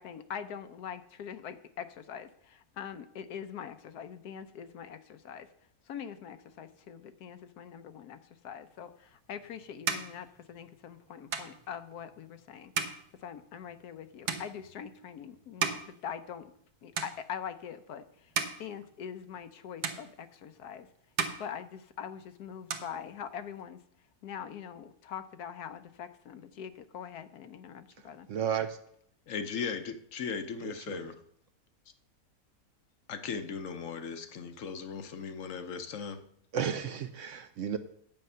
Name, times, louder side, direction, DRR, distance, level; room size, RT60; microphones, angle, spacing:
voice 1, 0.0-16.5 16.8-20.9 21.4-28.3, left 8 dB, 80° left, 1.2 m, -43 dB
sound 1, 9.0-16.7 16.9-17.6 18.1-19.6 19.8-20.7 21.0-22.2 22.5-23.6, right 6 dB, 85° right, 1.5 m, -38 dB
voice 2, 28.3-28.8 30.6-31.1 36.5-37.8, right 8 dB, 65° right, 0.8 m, -33 dB
voice 3, 29.3-31.1 33.1-36.2, left 6 dB, 60° left, 1.1 m, -37 dB
9.1 x 7.8 x 5.5 m
omnidirectional pair, 1.6 m